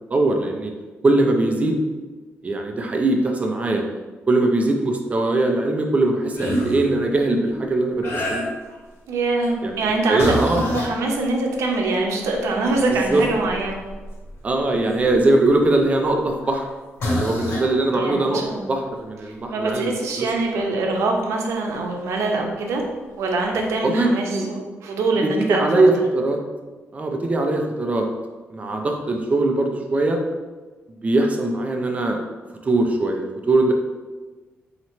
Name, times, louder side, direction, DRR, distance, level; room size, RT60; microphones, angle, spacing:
voice 1, 0.1-0.7 1.0-1.8 2.4-3.8 4.3-8.4 9.6-9.8 10.1-10.6 12.9-13.2 14.4-16.7 17.0-20.3 20.5-20.7 23.8-24.5 25.2-26.4 26.9-28.1 28.5-30.2 30.9-32.2 32.6-33.7, right 2 dB, 30° right, 3 dB, 0.4 m, -21 dB
sound 1, 6.3-6.9 8.0-8.7 9.3-9.6 10.2-11.0 11.8-11.9 12.3-15.5 16.4-16.6 17.0-17.7 21.0-21.1 22.8-22.9 23.5-23.7, equal, 60° left, 0.9 m, -28 dB
voice 2, 9.1-13.8 17.9-18.7 19.2-22.8 23.2-25.8, right 3 dB, 85° right, 1 dB, 0.6 m, -24 dB
3.0 x 2.8 x 4.2 m, 1.3 s
cardioid pair, 120°, 5 cm